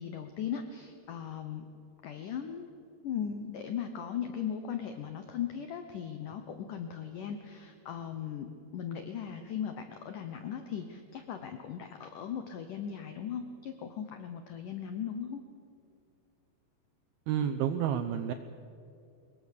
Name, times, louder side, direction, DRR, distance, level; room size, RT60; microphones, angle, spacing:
voice 1, 0.0-1.6 2.0-2.7 3.0-8.5 8.7-15.4, left 8 dB, 80° left, 7 dB, 1.8 m, -38 dB
voice 2, 17.3-18.3, right 9 dB, 85° right, 9 dB, 2.2 m, -30 dB
24.0 x 21.5 x 6.7 m, 2.6 s
omnidirectional pair, 5.3 m